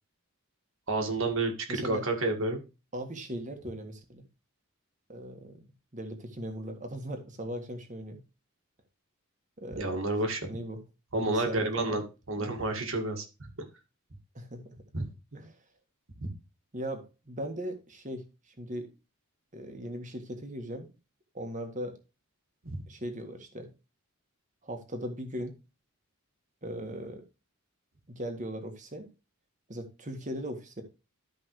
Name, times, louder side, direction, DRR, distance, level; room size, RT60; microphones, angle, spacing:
voice 1, 0.9-2.6 9.8-10.4 11.1-13.5 14.9-15.0 16.2-16.3 22.6-22.8, right 2 dB, 60° right, 5 dB, 2.0 m, -30 dB
voice 2, 1.7-2.0 2.9-4.2 5.1-5.6 5.9-8.2 9.6-10.0 10.4-10.8 11.1-12.0 12.4-12.6 14.3-14.8 15.3-15.6 16.7-18.9 19.5-20.9 21.3-22.0 22.9-23.7 24.6-25.5 26.6-27.2 28.1-29.1 29.7-30.8, equal, 35° right, 5 dB, 1.8 m, -38 dB
13.0 x 5.3 x 3.2 m, 0.29 s
head